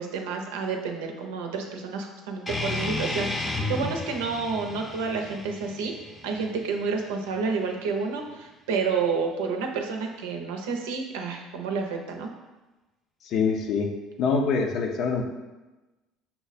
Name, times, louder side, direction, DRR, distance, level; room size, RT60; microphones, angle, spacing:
voice 1, 0.0-6.0 6.2-12.3, right 5 dB, 90° right, 3 dB, 0.6 m, -30 dB
sound 1, 2.5-7.5, left 2 dB, 20° left, 0.6 m, -33 dB
voice 2, 13.2-13.9 14.2-15.2, left 5 dB, 60° left, 3 dB, 0.6 m, -24 dB
5.6 x 2.1 x 4.1 m, 1.1 s
supercardioid pair, 85°, 0 cm